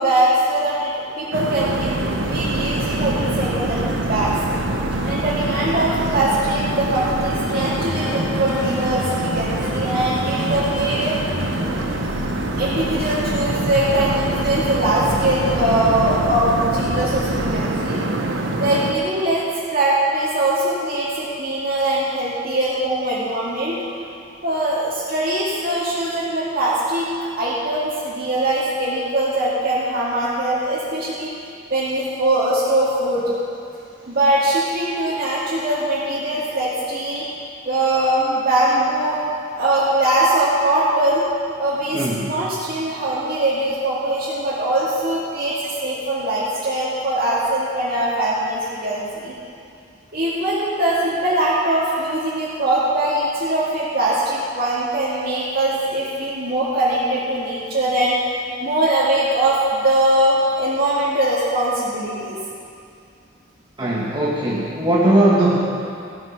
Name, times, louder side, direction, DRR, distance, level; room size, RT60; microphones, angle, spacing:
voice 1, 0.0-4.3 5.0-11.2 12.6-18.0 18.6-19.4 19.7-23.8 24.4-27.1 27.4-31.3 31.7-33.3 34.1-37.3 37.6-39.2 39.6-41.3 41.6-49.3 50.1-58.2 58.6-62.4, right 1 dB, 50° right, -8 dB, 2.4 m, -21 dB
sound 1, 1.3-18.9, right 1 dB, 75° right, 1.1 m, -25 dB
sound 2, 1.6-17.6, equal, 5° right, 4.0 m, -31 dB
sound 3, 7.5-10.4, left 1 dB, 20° left, 1.8 m, -35 dB
voice 2, 41.9-42.3 63.8-65.6, right 1 dB, 25° right, -5 dB, 1.3 m, -18 dB
15.0 x 9.5 x 6.2 m, 2.4 s
head